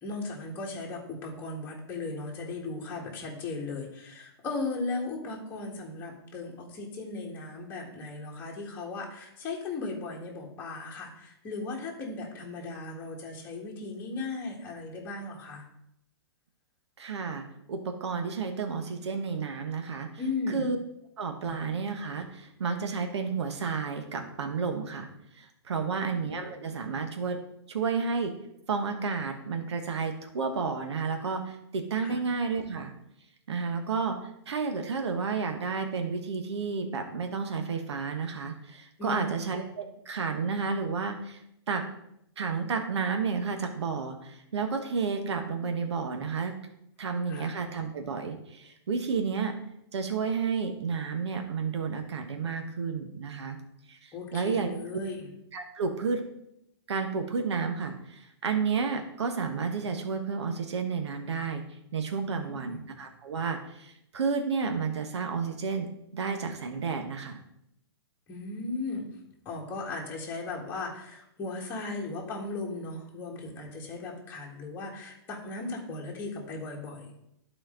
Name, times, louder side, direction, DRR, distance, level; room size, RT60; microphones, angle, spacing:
voice 1, 0.0-15.6 20.2-20.6 21.4-21.9 25.7-26.4 32.0-32.2 39.0-39.5 47.3-47.5 54.1-55.3 62.2-62.8 68.3-69.1 69.4-77.1, left 3 dB, 15° left, -3 dB, 1.7 m, -37 dB
voice 2, 17.0-20.1 20.5-20.8 21.2-25.1 25.3-27.4 27.7-28.3 28.7-32.9 33.5-41.4 41.7-41.8 42.4-46.5 47.0-49.5 49.9-53.6 53.9-54.8 55.5-56.2 56.9-61.6 61.9-65.9 66.1-67.4, right 5 dB, 80° right, 5 dB, 1.2 m, -31 dB
11.5 x 4.3 x 3.8 m, 0.79 s
hypercardioid pair, 160°, 14 cm